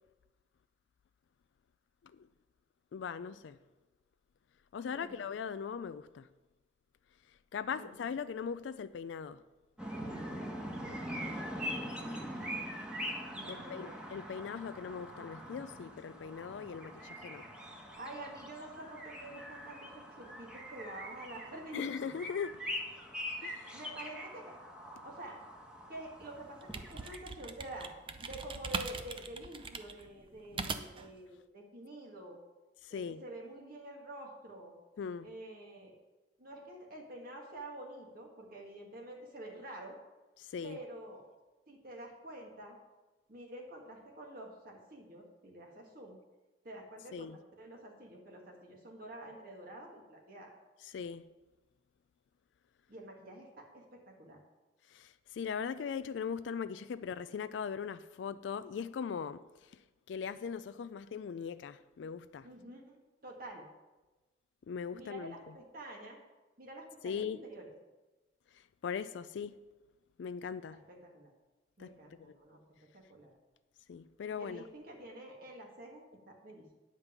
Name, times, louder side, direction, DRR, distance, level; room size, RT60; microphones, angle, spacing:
voice 1, 2.9-3.6 4.7-6.3 7.3-9.4 13.5-17.5 21.7-22.7 23.4-23.8 32.8-33.2 35.0-35.3 40.4-40.8 47.1-47.4 50.8-51.2 54.9-62.5 64.7-65.3 67.0-67.4 68.5-69.6 70.2-70.8 71.8-72.3 73.9-74.6, left 6 dB, 85° left, 0.4 m, -40 dB
sound 1, 9.8-27.2, equal, 5° right, 1.3 m, -43 dB
voice 2, 12.2-12.7 13.3-14.0 18.0-22.1 23.7-24.6 25.0-25.4 25.9-27.9 28.2-32.4 32.9-34.7 35.2-35.9 36.4-39.9 40.6-41.2 41.7-42.8 43.3-46.2 46.6-47.3 47.6-50.6 52.9-54.4 62.4-63.6 64.9-66.2 66.6-67.7 70.7-71.3 71.8-72.6 72.9-73.4 74.4-76.8, right 1 dB, 55° right, 1.7 m, -48 dB
sound 2, 26.4-31.1, right 4 dB, 30° right, 0.6 m, -41 dB
9.8 x 5.2 x 7.2 m
head